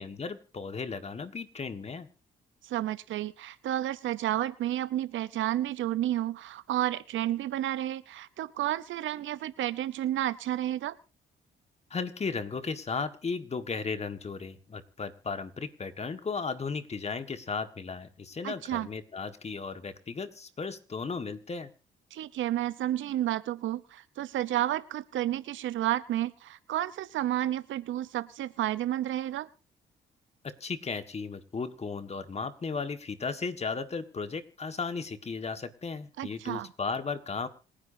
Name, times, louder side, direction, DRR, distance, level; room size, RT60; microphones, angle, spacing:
voice 1, 0.0-2.1 11.9-21.7 30.4-37.5, left 4 dB, 30° left, 9 dB, 1.7 m, -35 dB
voice 2, 2.6-11.0 18.4-18.9 22.1-29.5 36.2-36.7, right 13 dB, 75° right, 16 dB, 0.8 m, -31 dB
27.0 x 10.5 x 2.7 m, 0.36 s
cardioid pair, 90°, 20 cm